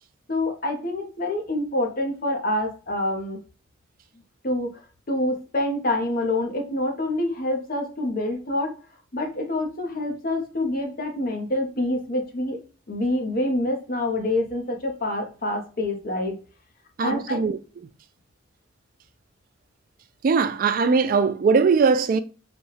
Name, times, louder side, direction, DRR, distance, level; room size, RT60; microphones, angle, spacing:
voice 1, 0.3-3.4 4.4-4.7 5.1-8.7 9.1-12.6 12.9-16.4 17.0-17.4, left 1 dB, 45° left, 0.9 m, -26 dB
voice 2, 17.0-17.6 20.2-22.2, right 5 dB, 45° right, 0.3 m, -20 dB
4.0 x 2.3 x 3.2 m
head